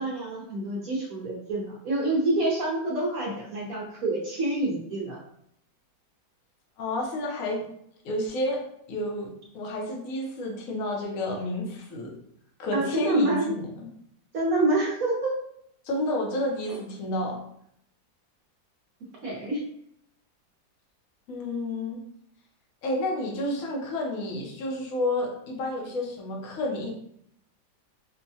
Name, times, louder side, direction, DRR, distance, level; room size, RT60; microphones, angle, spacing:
voice 1, 0.0-5.2 12.7-13.5 14.3-15.3 16.7-16.8 19.2-19.6, right 2 dB, 60° right, -4 dB, 1.1 m, -27 dB
voice 2, 6.8-7.7 8.0-8.6 8.9-12.2 12.6-13.6 15.8-17.4 21.3-22.0 22.8-26.9, left 1 dB, 55° left, -1 dB, 1.1 m, -30 dB
4.4 x 2.2 x 2.7 m, 0.70 s
omnidirectional pair, 2.0 m